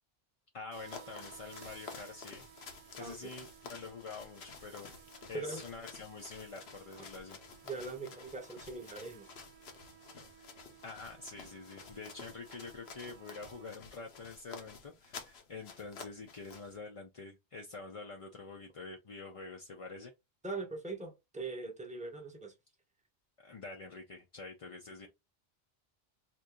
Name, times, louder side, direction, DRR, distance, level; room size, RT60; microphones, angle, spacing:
voice 1, 0.5-2.5 3.0-4.9 5.3-7.4 10.8-20.1 23.4-25.1, left 4 dB, 45° left, 0.5 m, -47 dB
sound 1, 0.7-13.7, right 9 dB, 55° right, 0.4 m, -58 dB
sound 2, 0.8-16.8, left 5 dB, 70° left, 1.0 m, -52 dB
voice 2, 3.0-3.3 5.3-5.6 7.6-9.3 20.4-22.5, right 3 dB, 5° right, 0.8 m, -41 dB
2.9 x 2.6 x 3.7 m
omnidirectional pair, 1.1 m